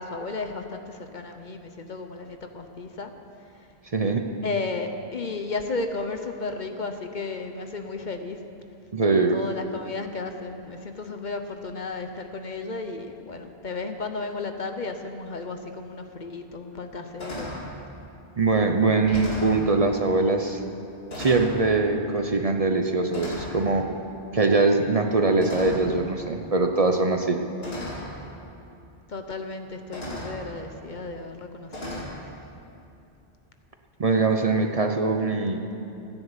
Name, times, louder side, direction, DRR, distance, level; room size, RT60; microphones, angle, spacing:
voice 1, 0.0-3.1 4.4-8.4 9.1-17.5 29.1-32.0, left 3 dB, 50° left, 6 dB, 1.0 m, -34 dB
voice 2, 3.9-4.3 8.9-9.4 18.4-20.6 21.2-23.9 24.3-27.4 34.0-35.6, right 3 dB, 40° right, 4 dB, 0.8 m, -22 dB
sound 1, 16.1-16.2 16.7-16.9 17.2-17.7 18.5-18.6 18.9-19.6 20.6-20.8 21.1-21.6 22.5-22.8 23.1-23.6 25.4-26.0 27.1-27.2 27.6-28.1 29.3-29.4 29.9-30.4 31.7-32.0, left 1 dB, 75° left, 2.8 m, -35 dB
15.0 x 9.9 x 8.1 m, 2.8 s
omnidirectional pair, 1.0 m